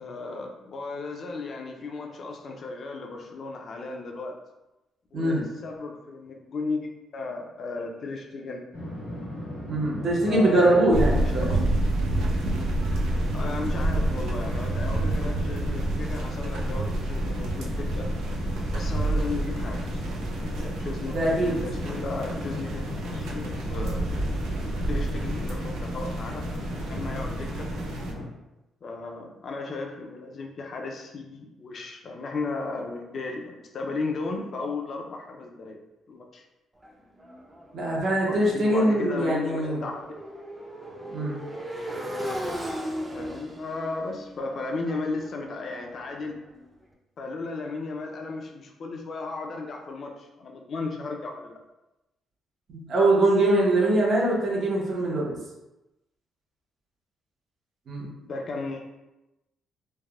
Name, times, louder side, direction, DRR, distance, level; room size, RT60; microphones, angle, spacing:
voice 1, 0.0-4.4 5.1-6.9 7.1-8.6 10.2-11.6 13.3-18.1 18.7-20.1 20.6-22.8 23.1-24.1 24.7-26.4 26.9-27.7 28.8-35.8 36.1-36.4 38.2-40.1 43.1-46.4 47.2-51.6 58.2-58.8, left 3 dB, 55° left, 2 dB, 0.5 m, -35 dB
sound 1, 8.7-28.3, left 1 dB, 90° left, 1.1 m, -36 dB
voice 2, 9.7-11.5 21.1-21.6 37.7-39.8 41.1-41.4 52.7-55.4 57.9-58.1, right 1 dB, 55° right, -3 dB, 0.8 m, -22 dB
sound 2, 10.9-28.1, right 1 dB, 85° right, 0.4 m, -29 dB
Motorcycle, 36.8-46.7, equal, 20° right, 0.5 m, -38 dB
3.3 x 2.0 x 2.3 m, 0.96 s
cardioid pair, 90°, 0 cm